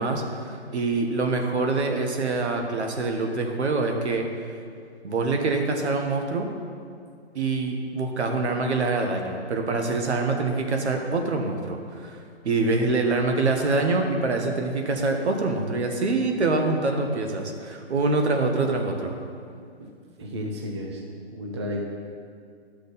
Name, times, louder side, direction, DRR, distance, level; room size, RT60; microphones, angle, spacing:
voice 1, 0.0-4.3 5.0-6.5 7.3-19.2, right 3 dB, 75° right, 3 dB, 1.4 m, -25 dB
voice 2, 20.2-21.0 21.3-21.8, left 1 dB, 25° right, 0 dB, 0.6 m, -32 dB
11.5 x 6.4 x 4.1 m, 2.2 s
hypercardioid pair, 165°, 34 cm